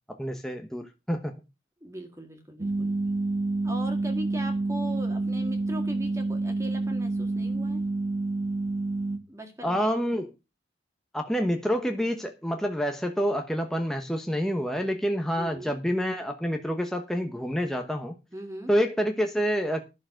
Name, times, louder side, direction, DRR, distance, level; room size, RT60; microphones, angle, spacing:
voice 1, 0.1-1.4 9.6-10.3 11.1-18.1 18.7-19.8, equal, 5° left, 1.0 m, -28 dB
voice 2, 1.8-2.9 3.6-7.8 9.3-10.0 15.3-15.8 18.3-18.7, right 1 dB, 15° right, 1.8 m, -39 dB
sound 1, 2.6-9.2, right 2 dB, 35° right, 1.5 m, -28 dB
11.5 x 6.9 x 6.4 m
head